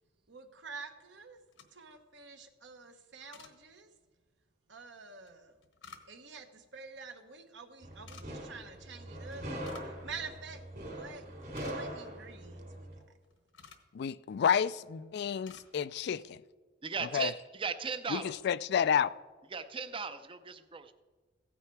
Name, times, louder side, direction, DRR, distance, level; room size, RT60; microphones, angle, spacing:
voice 1, 0.3-1.4 1.7-3.9 4.7-5.5 6.1-11.3 11.6-12.9, right 4 dB, 70° right, 1.2 m, -48 dB
sound 1, 1.4-2.0 3.2-3.6 5.3-6.4 7.9-8.3 9.3-10.0 10.3-10.4 10.9-11.0 11.3-12.1 13.0-13.9 14.6-14.9 15.1-15.7 16.0-16.3, left 6 dB, 80° left, 1.2 m, -54 dB
sound 2, 7.8-13.0, right 1 dB, 50° right, 3.0 m, -42 dB
voice 2, 13.9-16.4 17.1-17.3 18.1-18.2 18.4-19.1, left 7 dB, 60° left, 0.3 m, -30 dB
voice 3, 16.8-18.4 19.5-20.9, right 5 dB, 30° right, 0.5 m, -37 dB
16.0 x 8.9 x 4.6 m
head